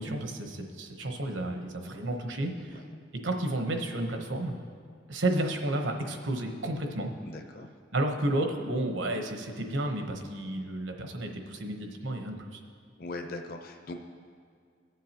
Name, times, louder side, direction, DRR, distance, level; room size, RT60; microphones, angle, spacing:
voice 1, 0.0-2.8 3.2-4.5 5.1-7.1 7.9-12.6, right 1 dB, 85° right, 4 dB, 1.0 m, -31 dB
voice 2, 2.6-3.0 7.2-7.7 13.0-13.9, left 2 dB, 50° left, 4 dB, 0.7 m, -41 dB
18.5 x 7.4 x 2.9 m, 2.2 s
head